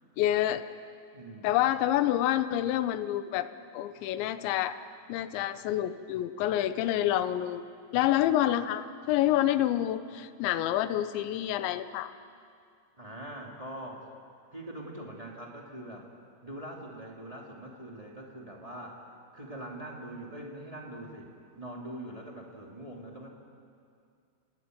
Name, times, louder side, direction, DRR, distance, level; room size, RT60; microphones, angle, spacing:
voice 1, 0.2-0.6 1.4-3.5 3.7-4.8 5.1-7.7 7.9-12.1, left 12 dB, 80° left, 12 dB, 3.0 m, -28 dB
voice 2, 1.1-1.5 12.9-14.1 14.5-16.1 16.4-19.1 19.3-21.3 21.6-23.3, right 1 dB, 15° right, -1 dB, 1.2 m, -43 dB
28.0 x 18.5 x 9.4 m, 2.3 s
omnidirectional pair, 5.5 m